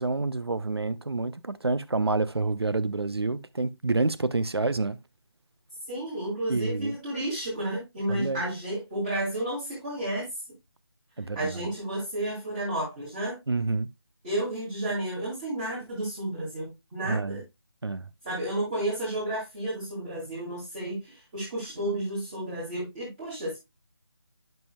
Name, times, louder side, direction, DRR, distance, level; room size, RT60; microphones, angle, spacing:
voice 1, 0.0-5.0 6.5-7.0 8.1-8.4 11.2-11.7 13.5-13.9 17.0-17.4 17.8-18.1, right 3 dB, 70° right, 0.7 m, -28 dB
voice 2, 5.9-10.3 11.3-13.4 14.2-17.4 18.2-23.6, right 1 dB, 15° right, 2.4 m, -32 dB
10.5 x 5.5 x 2.2 m
figure-of-eight pair, 160°, 14 cm